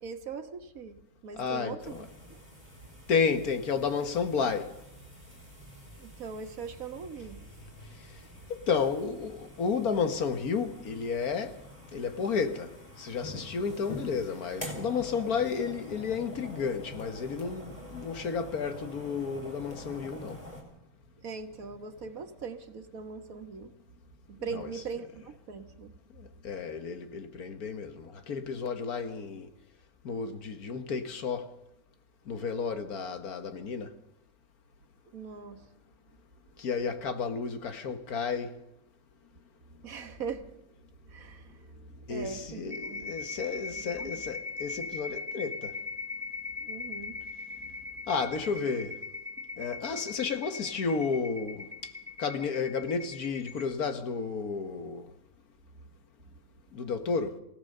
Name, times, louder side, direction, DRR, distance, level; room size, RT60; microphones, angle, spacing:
voice 1, 0.0-2.4 6.0-7.8 21.2-23.7 24.3-26.0 35.1-35.7 39.8-40.6 41.1-43.2 43.7-44.1 46.6-47.3 47.6-47.7, right 5 dB, 70° right, 1.8 m, -41 dB
voice 2, 1.4-2.0 3.1-4.8 7.9-8.2 8.5-20.4 24.5-24.7 26.1-29.5 30.0-31.6 32.3-34.0 36.6-38.6 42.1-45.8 48.1-49.0 49.6-51.9 52.2-55.1 56.7-57.4, left 5 dB, 85° left, 1.8 m, -32 dB
sound 1, 1.8-20.6, equal, 25° left, 4.7 m, -46 dB
sound 2, 42.7-53.7, left 3 dB, 20° right, 3.1 m, -40 dB
24.0 x 16.5 x 6.7 m
omnidirectional pair, 1.5 m